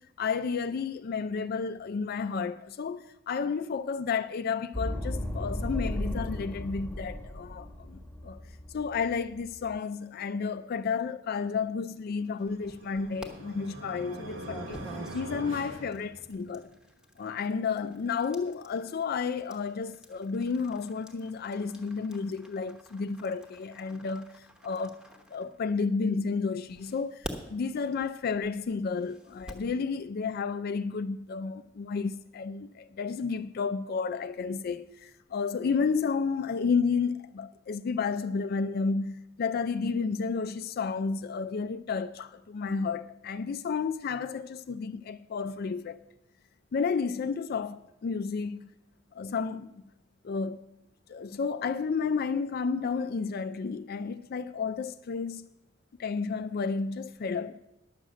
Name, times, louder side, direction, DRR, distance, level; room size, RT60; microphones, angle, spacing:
voice 1, 0.2-8.4 8.7-14.8 15.1-16.7 17.2-25.0 25.3-46.0 46.7-48.7 49.1-49.8 50.2-50.6 51.1-55.5 56.0-57.6, left 5 dB, 55° left, 0.4 m, -31 dB
sound 1, 4.7-9.8, left 1 dB, 10° left, 1.3 m, -36 dB
sound 2, 12.3-16.7, right 1 dB, 80° right, 1.3 m, -43 dB
sound 3, 12.4-13.3 14.0-26.0 26.7-29.7, right 1 dB, 5° right, 1.1 m, -48 dB
11.0 x 6.3 x 7.5 m
head